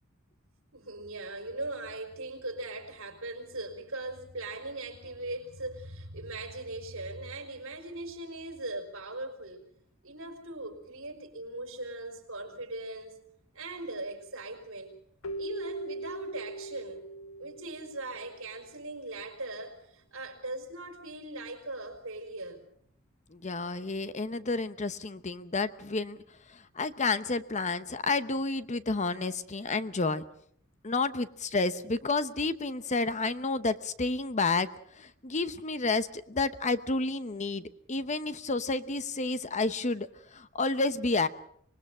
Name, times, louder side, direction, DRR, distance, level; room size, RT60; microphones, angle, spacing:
voice 1, 0.7-9.7 10.0-13.1 13.5-15.0 15.4-17.1 17.4-22.6, right 2 dB, 70° right, 4.7 m, -40 dB
Keyboard (musical), 15.2-18.5, right 2 dB, 85° left, 1.4 m, -40 dB
voice 2, 23.3-26.2 26.5-30.2 30.8-34.7 35.0-40.1 40.3-41.3, left 3 dB, 35° left, 0.9 m, -30 dB
25.5 x 20.5 x 6.2 m
head